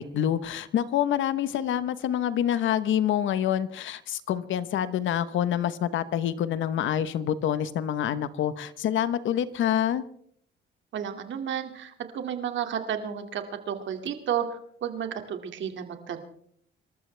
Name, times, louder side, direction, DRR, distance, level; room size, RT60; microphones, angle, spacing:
voice 1, 0.0-10.0, left 10 dB, 75° left, 14 dB, 1.1 m, -27 dB
voice 2, 10.9-16.2, right 8 dB, 70° right, 6 dB, 2.4 m, -32 dB
26.5 x 13.5 x 3.4 m, 0.65 s
cardioid pair, 90°, 20 cm